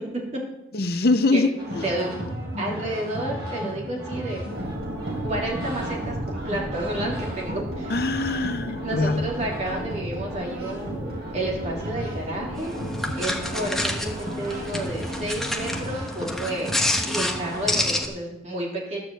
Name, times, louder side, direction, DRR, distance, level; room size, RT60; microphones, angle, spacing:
voice 1, 0.7-1.9 7.9-9.3, left 3 dB, 55° left, 9 dB, 0.7 m, -23 dB
sound 1, 1.6-17.8, equal, 60° right, 5.0 m, -34 dB
voice 2, 2.6-4.4 5.2-8.0 8.8-12.7 13.1-16.7 17.1-19.0, right 1 dB, 35° right, -3 dB, 3.2 m, -31 dB
sound 2, 4.5-15.9, right 1 dB, 85° right, 1.2 m, -37 dB
sound 3, 12.6-18.1, left 1 dB, ahead, 1.1 m, -28 dB
12.0 x 7.1 x 7.7 m, 0.90 s
head